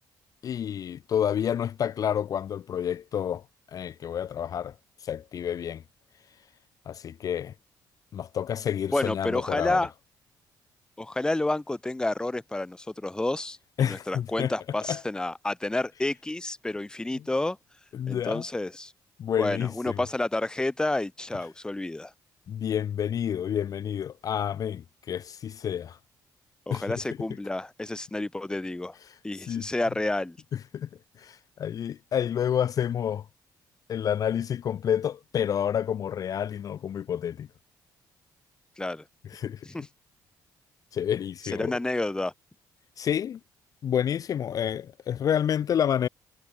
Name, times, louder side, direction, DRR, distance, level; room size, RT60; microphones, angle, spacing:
voice 1, 0.4-3.4 3.7-4.7 5.0-5.8 6.9-7.5 8.1-9.8 13.8-14.5 14.9-15.0 17.9-18.4 19.2-20.0 22.5-26.0 26.7-27.0 29.1-29.2 29.5-29.7 30.7-30.9 31.2-33.3 33.9-37.5 39.3-39.7 40.9-41.8 43.0-43.4 43.8-46.1, left 9 dB, 50° left, 0.4 m, -29 dB
voice 2, 8.9-9.9 11.0-17.6 18.1-18.9 19.4-22.1 26.7-28.9 29.2-30.4 38.8-39.0 39.7-39.9 41.5-42.3, left 2 dB, 10° left, 0.7 m, -30 dB
cardioid pair, 95°, 8 cm